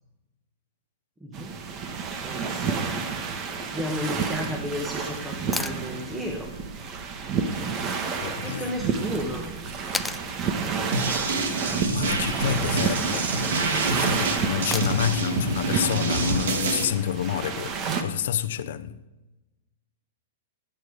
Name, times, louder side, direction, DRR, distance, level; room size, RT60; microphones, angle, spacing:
voice 1, 1.2-1.5 2.2-2.9 3.7-6.5 8.4-9.5, left 1 dB, 10° right, 1.8 m, -33 dB
sound 1, 1.3-18.0, right 5 dB, 35° right, 1.7 m, -30 dB
sound 2, 5.5-5.8 8.1-8.2 9.9-10.3 12.3-12.7 14.7-15.2 17.3-17.4, left 2 dB, 5° left, 0.5 m, -32 dB
voice 2, 8.2-8.7 11.7-13.3 14.0-19.0, left 11 dB, 70° left, 0.9 m, -29 dB
sound 3, 10.9-16.8, right 2 dB, 75° right, 2.5 m, -27 dB
20.0 x 8.7 x 5.1 m
hypercardioid pair, 130°, 0 cm